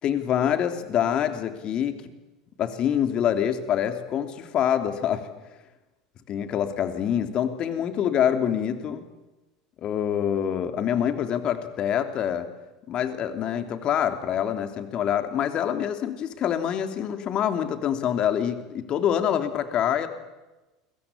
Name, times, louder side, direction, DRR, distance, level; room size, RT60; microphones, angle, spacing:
voice 1, 0.0-2.0 2.6-5.2 6.3-9.0 9.8-12.5 12.9-20.1, left 9 dB, 40° left, 8 dB, 3.2 m, -25 dB
29.0 x 22.5 x 8.6 m, 1.1 s
figure-of-eight pair, 75°, 2 cm